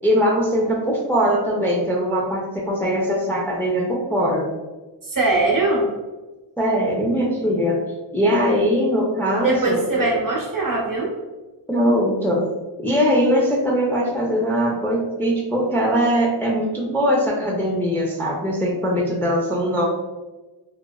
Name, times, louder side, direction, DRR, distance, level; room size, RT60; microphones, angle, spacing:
voice 1, 0.0-4.5 6.6-7.8 8.1-10.1 11.7-12.5 12.8-19.9, equal, 5° left, -3 dB, 0.4 m, -21 dB
voice 2, 5.0-5.9 9.4-11.1, right 2 dB, 45° right, -3 dB, 0.8 m, -21 dB
3.0 x 2.3 x 2.3 m, 1.2 s
wide cardioid pair, 55°, 46 cm